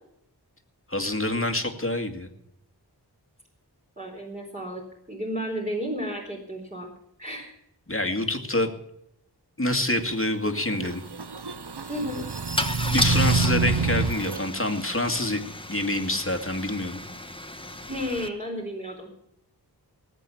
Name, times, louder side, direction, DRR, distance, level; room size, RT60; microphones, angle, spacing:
voice 1, 0.9-2.3 7.9-8.7 9.6-11.0 12.9-15.4 15.7-17.0, left 1 dB, 30° left, 6 dB, 2.3 m, -26 dB
voice 2, 4.0-6.9 7.2-7.6 11.9-12.3 17.9-19.1, equal, 20° right, -3 dB, 4.3 m, -32 dB
Car / Engine starting / Idling, 9.9-10.0 10.3-10.6 12.6-18.3, left 1 dB, 10° left, 1.5 m, -33 dB
sound 1, 10.7-14.4, right 4 dB, 70° right, 1.1 m, -27 dB
19.5 x 8.3 x 7.1 m, 0.77 s
wide cardioid pair, 40°, 41 cm